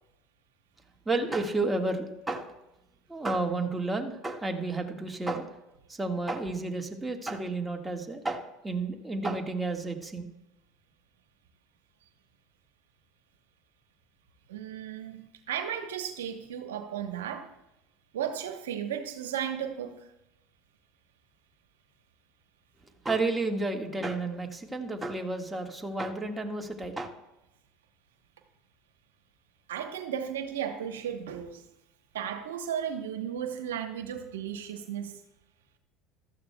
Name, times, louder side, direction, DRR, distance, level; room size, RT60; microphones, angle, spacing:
voice 1, 1.0-2.5 3.1-5.6 5.9-10.3 23.0-27.1, right 2 dB, 15° right, 2 dB, 1.7 m, -31 dB
voice 2, 14.5-17.5 18.1-20.1 29.7-31.6 32.1-35.2, right 9 dB, 85° right, 6 dB, 1.0 m, -35 dB
15.5 x 12.5 x 2.3 m, 0.90 s
hypercardioid pair, 85°, 0 cm